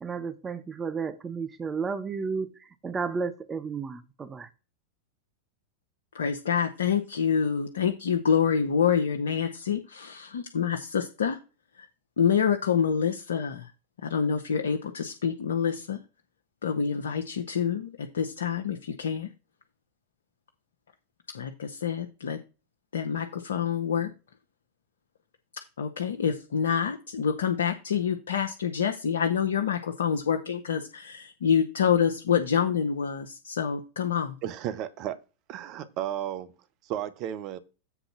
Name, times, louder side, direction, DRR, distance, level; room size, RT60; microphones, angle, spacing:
voice 1, 0.0-4.5, right 5 dB, 20° right, 0.9 m, -33 dB
voice 2, 6.1-11.4 11.7-11.9 12.2-13.7 14.0-16.0 16.6-19.3 21.3-22.4 22.9-24.1 25.8-34.3, left 7 dB, 65° left, 0.8 m, -27 dB
voice 3, 34.4-35.2 35.5-36.5 36.8-37.6, right 11 dB, 40° right, 1.0 m, -33 dB
8.1 x 3.8 x 5.9 m
figure-of-eight pair, 90°, 0 cm